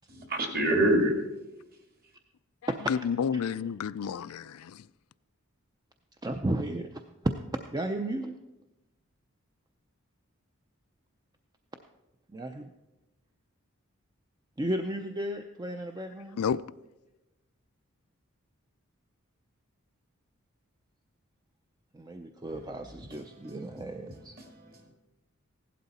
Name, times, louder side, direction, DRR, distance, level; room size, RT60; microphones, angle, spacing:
voice 1, 0.1-1.2 1.7-2.1 22.5-24.9, right 1 dB, 45° right, 2.0 m, -30 dB
voice 2, 2.6-4.9 16.4-16.6, left 7 dB, 90° left, 0.4 m, -31 dB
voice 3, 6.2-7.0 7.7-8.3 12.3-12.7 14.6-16.4 21.9-24.3, right 1 dB, 20° right, 0.5 m, -34 dB
15.5 x 11.5 x 4.1 m
head